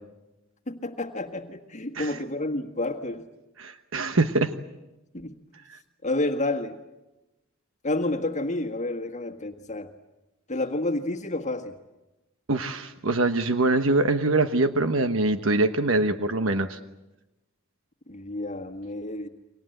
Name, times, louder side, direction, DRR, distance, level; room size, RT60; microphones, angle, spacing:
voice 1, 0.7-3.3 5.1-5.3 6.0-6.8 7.8-9.9 10.5-11.7 18.1-19.3, left 2 dB, 35° left, 4 dB, 1.7 m, -30 dB
voice 2, 3.6-4.5 12.5-16.8, right 2 dB, 75° right, 8 dB, 1.2 m, -24 dB
30.0 x 24.5 x 7.9 m, 1.0 s
head